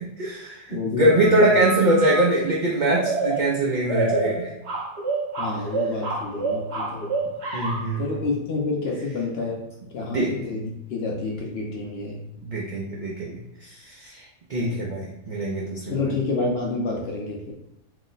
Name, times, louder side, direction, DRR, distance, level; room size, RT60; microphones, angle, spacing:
voice 1, 0.0-4.5 7.5-8.2 10.1-10.3 12.4-14.2 14.5-16.1, right 1 dB, 90° right, -4 dB, 0.4 m, -23 dB
voice 2, 0.7-1.4 5.4-7.1 8.0-9.6 9.9-12.2 14.6-14.9 15.9-17.5, left 3 dB, 60° left, -1 dB, 0.7 m, -29 dB
sound 1, 1.1-2.3 2.9-8.0, right 3 dB, 55° right, 0.9 m, -28 dB
2.9 x 2.1 x 3.8 m, 0.86 s
omnidirectional pair, 1.5 m